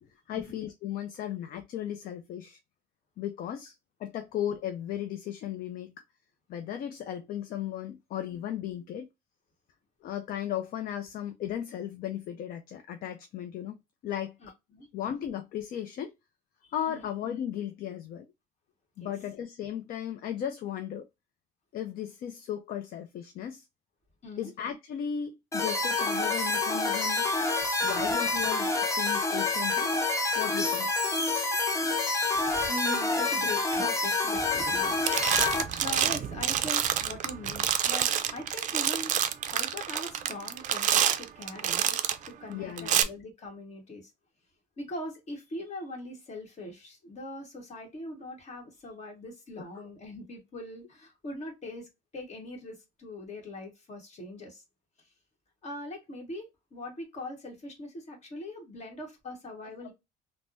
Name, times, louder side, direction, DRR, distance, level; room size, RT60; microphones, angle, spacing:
voice 1, 0.3-2.6 3.2-3.7 4.0-5.9 6.5-9.1 10.0-13.8 14.0-14.3 14.9-16.1 16.7-18.3 19.0-21.0 21.7-23.6 24.4-27.3 27.8-30.9 42.5-43.0 49.6-49.9, left 10 dB, 60° left, 0.4 m, -36 dB
voice 2, 14.4-14.9 16.9-17.1 19.0-19.1 24.2-24.5 28.0-28.1 32.3-42.0 42.2-44.1 44.8-51.9 52.1-54.6 55.6-59.9, left 1 dB, 40° left, 1.4 m, -41 dB
sound 1, 25.5-35.6, left 3 dB, 20° left, 0.7 m, -27 dB
sound 2, 34.5-34.8 35.0-42.3 42.8-43.0, right 10 dB, 50° right, 0.4 m, -28 dB
3.3 x 2.1 x 2.5 m
cardioid pair, 110°, 17 cm